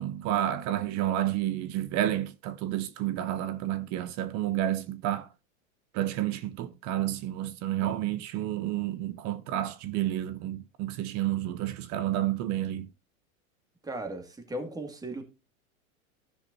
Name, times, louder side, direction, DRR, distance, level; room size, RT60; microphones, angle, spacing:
voice 1, 0.0-5.3 5.9-12.9, right 12 dB, 40° right, 0.8 m, -30 dB
voice 2, 13.8-15.2, right 1 dB, 10° right, 2.1 m, -37 dB
16.0 x 5.8 x 2.7 m
hypercardioid pair, 110°, 41 cm